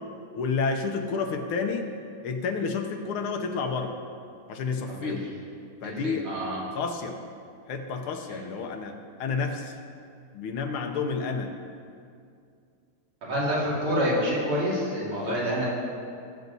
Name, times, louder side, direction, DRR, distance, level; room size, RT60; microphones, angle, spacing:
voice 1, 0.4-1.9 2.2-4.0 4.5-5.3 5.8-6.3 6.7-7.2 7.7-9.8 10.3-11.6 15.1-15.4, left 4 dB, 80° left, 4 dB, 1.7 m, -30 dB
voice 2, 4.9-5.2 5.8-6.6 8.3-8.4 13.2-15.7, equal, 75° right, -6 dB, 3.5 m, -28 dB
20.0 x 6.6 x 4.0 m, 2.3 s
omnidirectional pair, 2.3 m